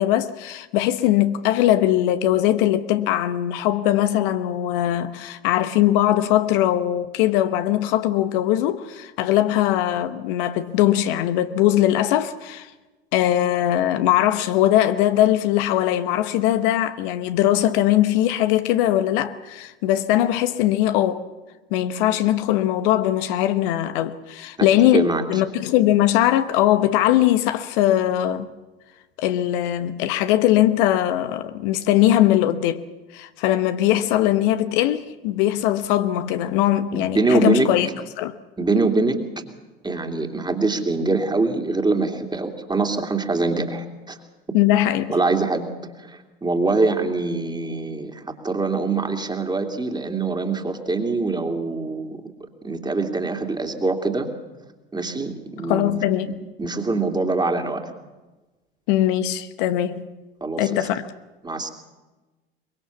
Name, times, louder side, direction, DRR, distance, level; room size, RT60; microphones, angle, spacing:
voice 1, 0.0-12.7 13.1-21.2 21.7-28.5 29.2-32.8 33.1-37.9 38.2-38.4 44.5-45.1 55.7-56.4 58.9-60.1 60.6-61.1, left 13 dB, 60° left, 1.1 m, -20 dB
voice 2, 24.9-25.2 36.9-37.7 38.6-39.2 39.8-44.2 44.5-44.6 45.1-45.7 46.0-52.3 52.6-54.3 54.9-55.9 56.3-57.9 60.4-60.8 61.4-61.7, right 3 dB, 15° right, 2.7 m, -24 dB
23.5 x 22.5 x 7.1 m
figure-of-eight pair, 75°, 30 cm